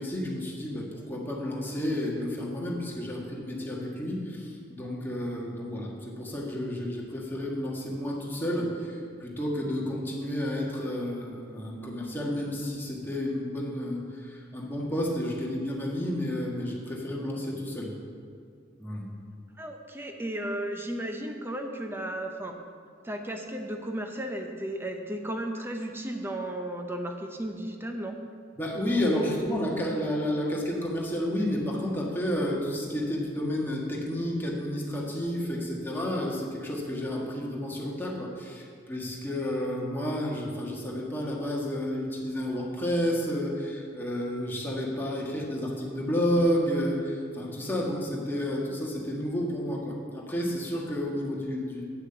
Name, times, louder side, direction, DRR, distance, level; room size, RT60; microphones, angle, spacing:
voice 1, 0.0-17.9 18.8-19.1 28.6-51.9, equal, 10° left, -3 dB, 1.5 m, -31 dB
voice 2, 19.6-22.5 23.0-28.2, right 1 dB, 10° right, 3 dB, 0.8 m, -34 dB
8.4 x 6.4 x 7.8 m, 2.3 s
head